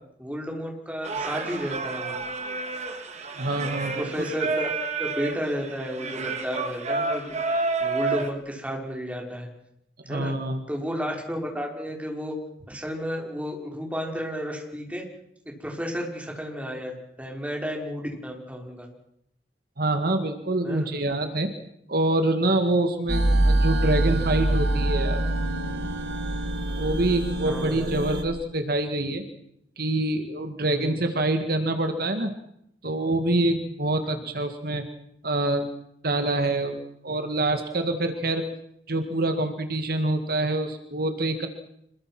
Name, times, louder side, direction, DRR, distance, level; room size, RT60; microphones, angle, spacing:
voice 1, 0.2-2.1 4.0-4.7 5.0-7.4 7.8-9.5 10.1-10.3 10.7-12.3 12.7-15.0 15.6-18.9 20.6-20.9 27.4-27.9 30.7-31.0, equal, 10° right, 0 dB, 5.7 m, -32 dB
Singing, 1.0-8.3, right 3 dB, 40° right, 2.8 m, -30 dB
voice 2, 3.3-4.1 10.1-10.6 19.8-21.5 21.9-25.2 26.8-29.2 29.8-32.3 32.8-34.9 35.2-35.7 36.0-36.8 37.0-38.4 38.9-41.5, right 2 dB, 60° right, 7 dB, 2.2 m, -25 dB
sound 1, 23.1-28.2, right 1 dB, 75° right, 2.7 m, -25 dB
26.5 x 23.0 x 6.2 m, 0.74 s
head